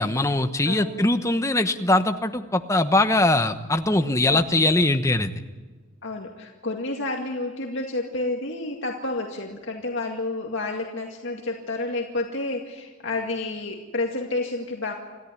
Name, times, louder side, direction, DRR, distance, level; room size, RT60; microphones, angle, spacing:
voice 1, 0.0-5.3, left 2 dB, 15° left, 8 dB, 1.0 m, -21 dB
voice 2, 0.7-1.0 4.3-4.4 6.0-14.9, left 2 dB, 60° left, 1 dB, 2.1 m, -30 dB
27.5 x 14.0 x 9.9 m, 1.3 s
head